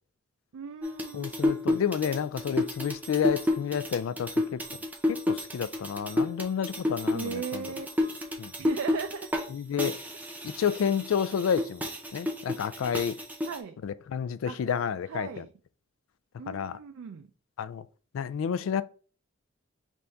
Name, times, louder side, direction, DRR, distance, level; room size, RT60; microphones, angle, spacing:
voice 1, 0.5-1.3 7.1-7.9 8.6-9.3 9.8-9.9 13.5-13.8 14.5-14.6 15.1-15.5 16.4-17.3, right 6 dB, 90° right, 0.4 m, -37 dB
sound 1, 0.8-9.5 9.8-13.6, left 2 dB, 10° right, 0.5 m, -31 dB
voice 2, 1.1-4.6 5.1-7.6 8.4-8.5 9.5-10.0 10.4-11.9 12.1-13.2 13.8-15.4 16.5-16.8 17.6-17.9 18.1-18.8, left 7 dB, 80° left, 0.3 m, -30 dB
3.5 x 2.6 x 4.3 m
head